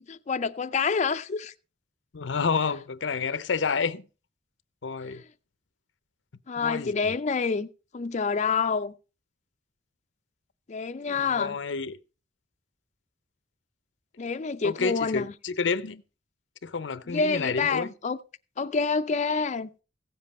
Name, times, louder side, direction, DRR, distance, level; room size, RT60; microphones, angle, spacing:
voice 1, 0.1-1.5 6.5-7.7 7.9-8.9 10.7-11.6 14.2-15.3 17.1-18.2 18.6-19.7, left 5 dB, 40° left, 0.4 m, -27 dB
voice 2, 2.1-4.0 4.8-5.2 6.6-7.1 11.1-12.0 14.6-16.0 16.6-17.9, left 5 dB, 90° left, 0.7 m, -29 dB
16.0 x 7.5 x 4.2 m
head